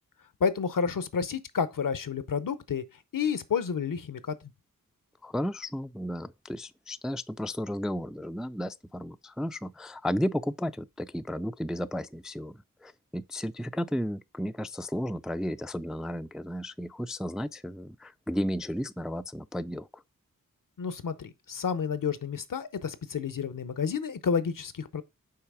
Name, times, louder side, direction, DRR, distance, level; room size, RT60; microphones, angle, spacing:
voice 1, 0.4-2.8 3.1-4.4 20.8-25.0, left 6 dB, 70° left, 0.8 m, -30 dB
voice 2, 5.2-19.9, equal, ahead, 0.3 m, -33 dB
5.8 x 4.1 x 4.8 m
cardioid pair, 45°, 33 cm